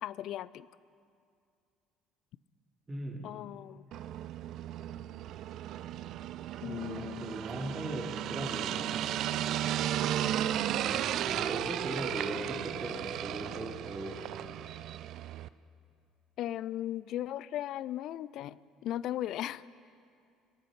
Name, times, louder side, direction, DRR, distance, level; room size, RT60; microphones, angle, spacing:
voice 1, 0.0-0.7 3.2-3.8 6.6-7.4 16.4-19.6, left 12 dB, 55° left, 19 dB, 0.4 m, -37 dB
voice 2, 2.9-3.3 6.6-8.8 10.7-14.2, right 1 dB, 20° right, 0 dB, 2.9 m, -38 dB
sound 1, 3.9-15.5, right 11 dB, 55° right, 0.4 m, -35 dB
25.0 x 8.7 x 6.7 m, 2.4 s
figure-of-eight pair, 55°, 0 cm